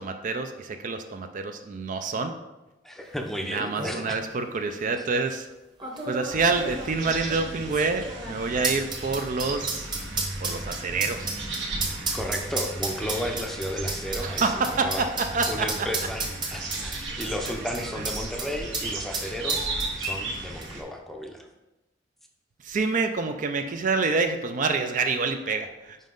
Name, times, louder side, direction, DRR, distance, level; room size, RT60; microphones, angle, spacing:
voice 1, 0.0-2.3 3.5-5.5 6.1-9.9 10.4-11.3 14.2-15.7 16.5-16.6 22.6-26.0, right 4 dB, 45° right, 7 dB, 0.4 m, -27 dB
voice 2, 2.8-4.2 4.9-5.0 5.8-5.9 12.1-15.1 15.5-19.7 20.0-21.5, equal, ahead, 2 dB, 0.6 m, -33 dB
sound 1, 3.2-3.3 3.6-4.0 4.8-4.9 5.8-18.5 18.7-18.9 19.1-20.4 20.6-20.7, right 3 dB, 25° right, 1.1 m, -32 dB
sound 2, 6.3-20.8, right 2 dB, 70° right, 1.0 m, -35 dB
5.5 x 5.1 x 3.8 m, 1.0 s
head